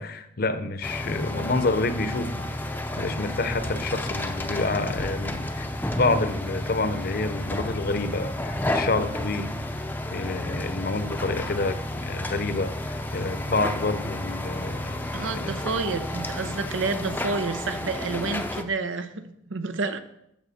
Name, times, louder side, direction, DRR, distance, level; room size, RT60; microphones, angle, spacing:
voice 1, 0.0-2.5 3.0-5.7 6.0-9.5 10.1-15.6, left 3 dB, 50° left, 0.7 m, -28 dB
sound 1, 0.8-18.6, left 1 dB, 10° left, 0.6 m, -31 dB
voice 2, 15.1-20.0, right 4 dB, 85° right, 0.8 m, -29 dB
13.0 x 5.9 x 4.2 m
head